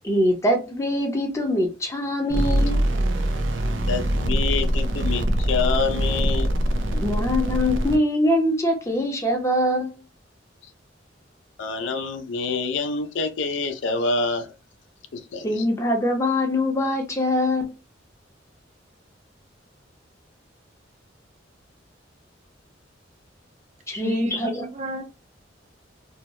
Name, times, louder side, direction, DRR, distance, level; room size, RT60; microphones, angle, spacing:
voice 1, 0.0-2.8 6.9-9.9 15.4-17.7 23.9-24.7, left 1 dB, 15° left, 0.6 m, -23 dB
sound 1, 2.3-8.0, right 1 dB, 85° right, 0.5 m, -23 dB
voice 2, 3.9-6.5 11.6-14.5 15.1-15.6, left 4 dB, 70° left, 0.5 m, -27 dB
voice 3, 23.9-25.0, right 1 dB, 40° right, 0.5 m, -32 dB
2.6 x 2.1 x 2.9 m
head